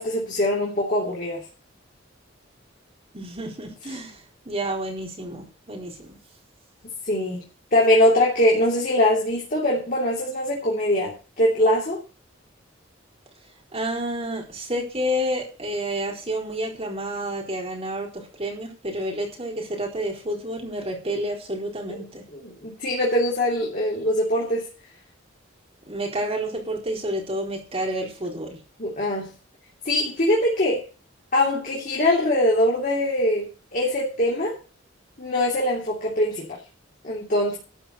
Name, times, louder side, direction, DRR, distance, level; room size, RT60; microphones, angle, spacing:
voice 1, 0.0-1.4 7.1-7.4 7.7-12.0 22.3-24.7 28.8-29.3 29.8-30.8 31.3-34.5 35.2-36.6 37.0-37.6, left 1 dB, 45° left, -3 dB, 3.1 m, -22 dB
voice 2, 3.1-4.2 4.5-6.2 13.7-22.2 25.9-28.6, right 1 dB, 30° right, -1 dB, 4.3 m, -29 dB
13.0 x 5.7 x 8.0 m, 0.36 s
head